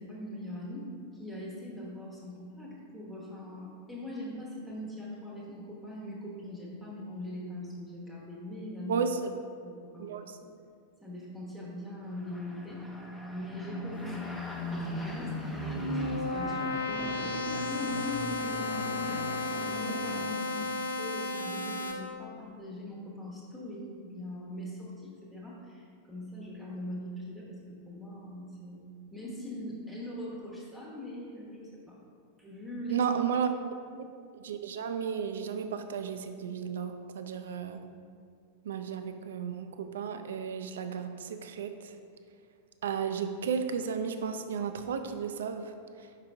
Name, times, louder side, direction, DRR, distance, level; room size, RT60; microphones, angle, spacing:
voice 1, 0.0-9.0 9.6-10.1 11.0-12.8 13.3-14.4 14.7-19.4 19.7-27.6 27.9-28.8 29.1-32.0 32.4-33.0 33.9-34.1, left 1 dB, 10° right, -6 dB, 1.0 m, -41 dB
sound 1, 12.0-20.2, left 1 dB, 5° left, 0.7 m, -39 dB
sound 2, 15.4-21.9, left 2 dB, 85° left, 0.6 m, -34 dB
voice 2, 32.9-33.5 34.4-37.9 38.6-41.9 42.8-45.7, right 7 dB, 60° right, 8 dB, 0.4 m, -33 dB
5.6 x 4.9 x 3.5 m, 2.3 s
figure-of-eight pair, 90°, 0 cm